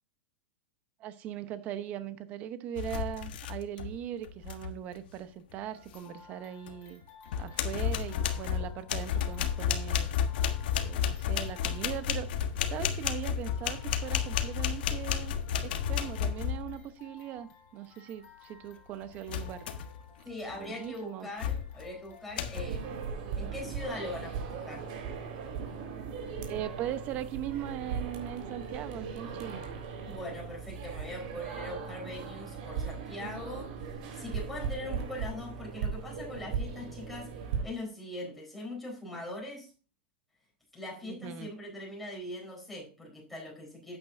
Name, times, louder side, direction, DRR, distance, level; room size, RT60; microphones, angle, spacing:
voice 1, 1.0-7.0 7.4-10.1 10.8-12.3 12.7-15.3 15.6-19.7 20.5-21.3 26.5-29.6 41.0-41.5, right 11 dB, 30° right, 0.9 m, -39 dB
sound 1, 2.8-4.0 4.2-4.7 6.7-6.8 7.3-16.8 19.3-20.0 20.5-20.8 21.4-21.9 22.4-22.6, left 8 dB, 60° left, 1.4 m, -32 dB
sound 2, 5.7-22.7, left 7 dB, 30° left, 3.0 m, -57 dB
voice 2, 20.2-23.0 23.3-24.9 30.1-39.7 40.7-44.0, left 1 dB, ahead, 4.2 m, -41 dB
sound 3, 22.5-37.6, right 6 dB, 50° right, 3.6 m, -38 dB
11.5 x 9.1 x 2.7 m
supercardioid pair, 165°, 6 cm